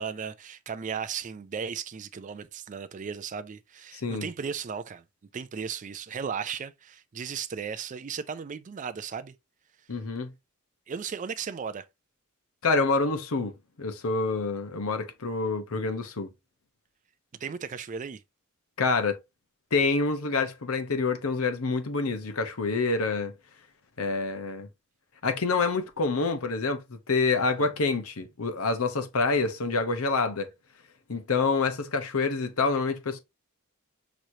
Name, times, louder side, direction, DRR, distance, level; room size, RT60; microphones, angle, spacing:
voice 1, 0.0-5.0 5.3-9.3 10.9-11.8 17.4-18.2 27.6-27.7, right 6 dB, 35° right, 0.4 m, -36 dB
voice 2, 3.9-4.3 9.9-10.3 12.6-16.3 18.8-19.2 19.7-23.3 24.0-24.7 25.2-30.5 31.1-33.2, left 4 dB, 80° left, 0.9 m, -27 dB
6.1 x 3.1 x 2.7 m
head